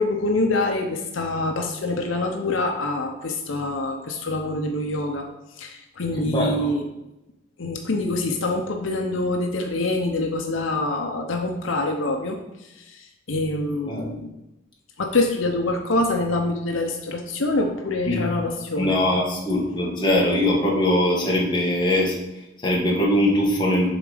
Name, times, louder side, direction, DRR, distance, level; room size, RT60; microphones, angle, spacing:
voice 1, 0.0-5.3 5.6-6.8 7.6-14.3 15.0-19.0, left 2 dB, 75° left, 3 dB, 0.7 m, -25 dB
voice 2, 6.1-6.7 13.9-14.1 18.1-18.3 18.8-23.9, left 1 dB, 25° left, -4 dB, 1.6 m, -22 dB
7.2 x 4.0 x 5.0 m, 0.94 s
head